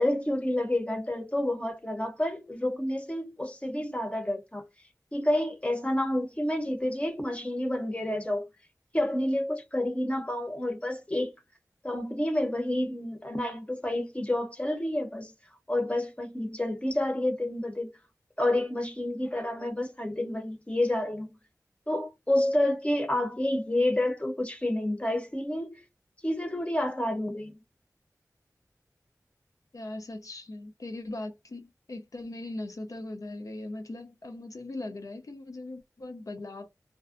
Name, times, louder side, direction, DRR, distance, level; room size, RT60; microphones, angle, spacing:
voice 1, 0.0-4.6 5.1-8.5 8.9-11.3 11.8-15.3 15.7-17.9 18.4-21.3 21.9-25.8 26.2-27.6, left 1 dB, 20° left, 0.7 m, -29 dB
voice 2, 29.7-36.7, left 2 dB, 60° left, 0.4 m, -39 dB
2.5 x 2.1 x 2.4 m
wide cardioid pair, 65°, 6 cm